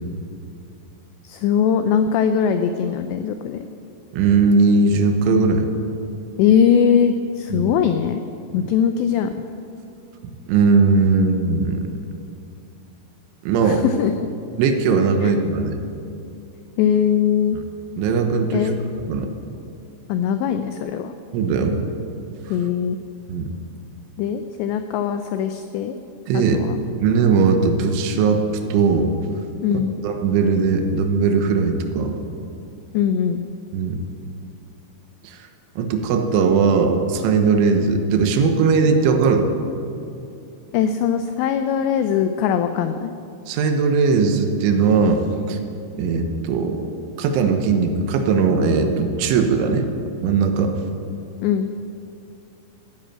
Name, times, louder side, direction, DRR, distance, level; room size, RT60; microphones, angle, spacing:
voice 1, 1.2-3.7 6.4-8.2 8.5-9.3 13.7-14.1 15.2-15.3 16.8-17.6 18.5-18.7 20.1-21.1 22.5-23.0 24.2-26.0 26.3-26.8 29.6-29.9 32.9-33.4 40.7-43.1 51.4-51.7, left 8 dB, 90° left, 8 dB, 2.5 m, -20 dB
voice 2, 4.1-5.7 7.5-7.8 8.5-8.7 10.5-11.8 13.4-13.8 14.6-15.8 17.5-17.6 18.0-18.7 19.1-19.3 21.3-21.8 22.5-22.6 23.3-23.5 26.3-26.6 27.0-28.4 28.7-29.2 29.7-32.2 33.7-34.0 35.2-35.4 35.8-39.5 43.5-45.6 46.0-46.9 47.2-49.9 50.2-50.7, right 4 dB, 80° right, 5 dB, 3.4 m, -19 dB
14.5 x 11.0 x 8.9 m, 2.6 s
omnidirectional pair, 5.8 m